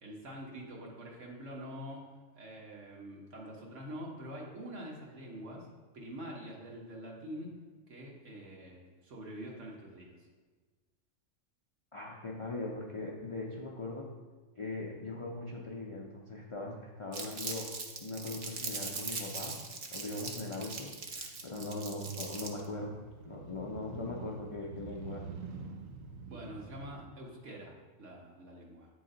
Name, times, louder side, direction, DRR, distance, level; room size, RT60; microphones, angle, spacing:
voice 1, 0.0-2.1 2.3-5.7 5.9-7.6 7.9-10.3 26.3-28.9, equal, 70° right, -2 dB, 1.6 m, -45 dB
voice 2, 11.9-14.2 14.6-17.8 18.0-19.6 19.9-25.3, left 2 dB, 45° left, -2 dB, 0.4 m, -40 dB
Crumpling crinkling, 17.1-22.7, right 4 dB, 50° right, 0.8 m, -40 dB
Motorcycle, 19.9-27.1, right 5 dB, 90° right, 1.0 m, -48 dB
8.6 x 3.9 x 3.8 m, 1.4 s
omnidirectional pair, 1.3 m